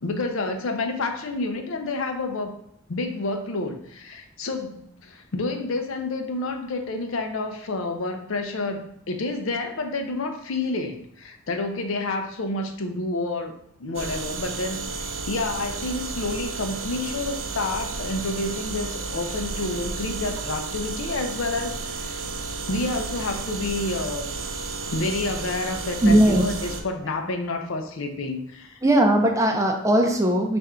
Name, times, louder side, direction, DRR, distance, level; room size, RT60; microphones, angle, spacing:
voice 1, 0.0-2.6 2.9-22.2 22.7-24.3 24.9-28.8, left 2 dB, 85° left, 6 dB, 0.6 m, -29 dB
sound 1, 13.9-26.8, right 3 dB, 80° right, 0.5 m, -32 dB
voice 2, 26.0-26.5 28.8-30.6, right 1 dB, 15° right, 3 dB, 0.5 m, -19 dB
3.6 x 2.6 x 4.3 m, 0.73 s
head